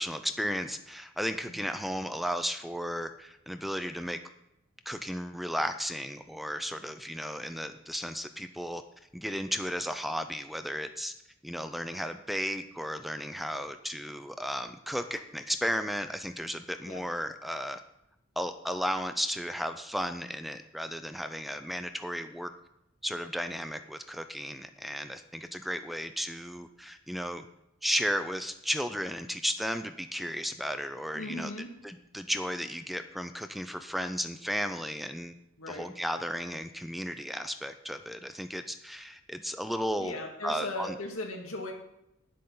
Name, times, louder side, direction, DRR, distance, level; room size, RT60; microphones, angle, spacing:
voice 1, 0.0-4.2 4.9-8.8 9.1-11.1 11.4-17.8 18.4-22.5 23.0-27.4 27.8-31.5 31.8-35.3 35.7-40.1 40.4-40.9, equal, ahead, 9 dB, 0.4 m, -34 dB
voice 2, 31.1-31.7 35.6-35.9 40.0-41.7, left 2 dB, 80° left, 1 dB, 2.2 m, -38 dB
9.9 x 7.6 x 5.5 m, 0.85 s
head